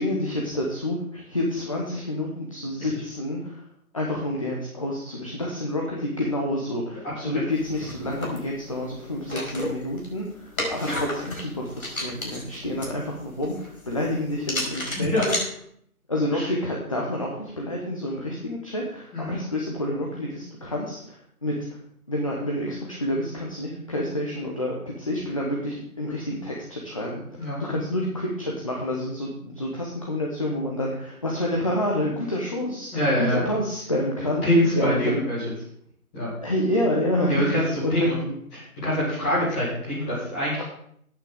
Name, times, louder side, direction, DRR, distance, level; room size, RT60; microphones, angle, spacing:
voice 1, 0.0-3.6 3.9-15.3 16.1-21.5 22.1-27.2 27.6-35.3 36.4-38.1, left 1 dB, 25° left, -2 dB, 1.0 m, -28 dB
voice 2, 6.9-7.4 10.9-11.0 15.0-15.2 16.3-16.5 19.1-19.4 27.4-27.6 32.9-33.4 34.4-35.4 36.1-36.3 37.3-38.2 38.5-40.6, equal, 5° left, -8 dB, 2.0 m, -25 dB
sound 1, 7.5-15.4, left 1 dB, 65° left, 4.8 m, -34 dB
14.0 x 8.9 x 3.7 m, 0.66 s
figure-of-eight pair, 165°, 44 cm